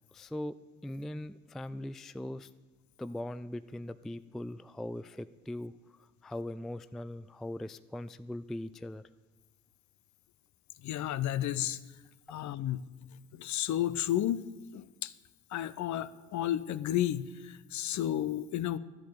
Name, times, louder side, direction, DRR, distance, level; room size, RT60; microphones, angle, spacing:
voice 1, 0.1-0.5 0.8-2.5 3.0-5.7 6.2-9.0, left 1 dB, ahead, 15 dB, 0.3 m, -40 dB
voice 2, 10.8-11.8 12.3-12.9 13.3-15.1 15.5-18.8, left 12 dB, 50° left, 17 dB, 0.7 m, -32 dB
11.5 x 8.2 x 9.2 m, 1.2 s
figure-of-eight pair, 45°, 38 cm